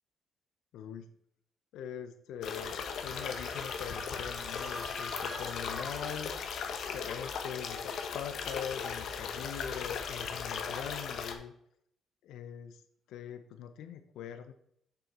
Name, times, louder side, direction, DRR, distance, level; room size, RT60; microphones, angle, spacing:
voice 1, 0.7-1.1 1.7-11.5 12.2-12.8 13.1-14.5, left 8 dB, 85° left, 8 dB, 0.7 m, -42 dB
sound 1, 2.4-11.4, left 6 dB, 70° left, 1.1 m, -37 dB
sound 2, 3.0-6.6, equal, 5° left, 1.6 m, -46 dB
7.0 x 6.2 x 4.3 m, 0.70 s
cardioid pair, 90°, 0 cm